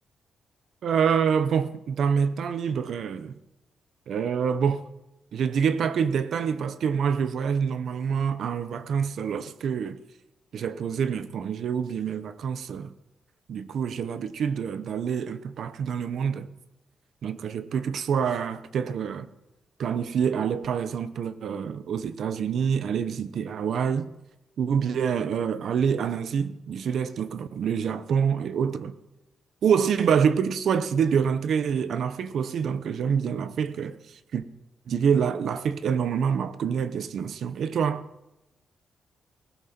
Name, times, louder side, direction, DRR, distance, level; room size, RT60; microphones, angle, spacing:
voice 1, 0.8-3.4 4.1-4.9 5.3-10.0 10.5-12.9 13.5-16.5 17.2-19.3 19.8-24.1 24.6-29.0 29.6-34.4 34.9-38.0, right 7 dB, 55° right, 0.8 m, -26 dB
18.5 x 15.5 x 4.4 m
wide cardioid pair, 175°, 0 cm